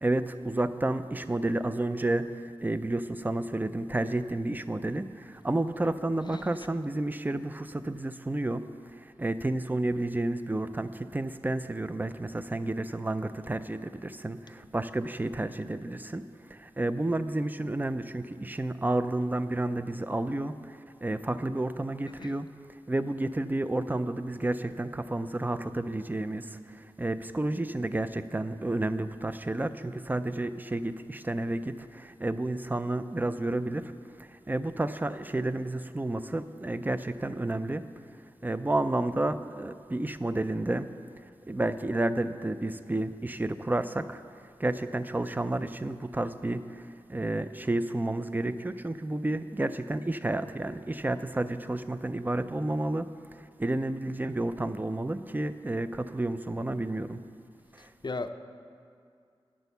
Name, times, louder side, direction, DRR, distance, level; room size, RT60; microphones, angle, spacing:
voice 1, 0.0-16.2 16.5-22.5 22.9-33.9 34.2-37.8 38.4-40.9 41.5-44.2 44.6-53.1 53.4-57.2 57.7-57.9, right 2 dB, 20° right, 11 dB, 0.4 m, -31 dB
voice 2, 6.3-6.5 22.2-22.3 58.0-58.3, left 3 dB, 45° left, 9 dB, 0.5 m, -35 dB
9.8 x 6.2 x 6.8 m, 2.3 s
wide cardioid pair, 70°, 10 cm